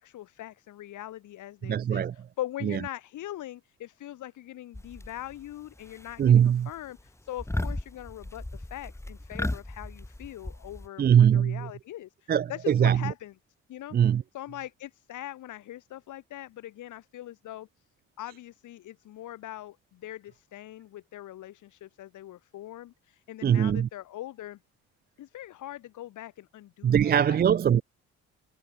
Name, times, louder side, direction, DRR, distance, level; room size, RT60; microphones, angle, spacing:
voice 1, 0.0-2.1 2.4-13.3 13.7-14.0 14.3-17.7 18.2-24.6 25.2-27.4, left 13 dB, 80° left, 2.6 m, -41 dB
voice 2, 1.6-2.1 2.6-2.8 6.2-6.7 11.0-11.7 12.3-13.1 13.9-14.2 23.4-23.9 26.8-27.8, right 9 dB, 35° right, 0.4 m, -22 dB
sound 1, 4.7-5.4 5.8-6.4 6.7-7.0 7.4-10.9, left 1 dB, 10° left, 2.9 m, -35 dB
cardioid pair, 90°, 30 cm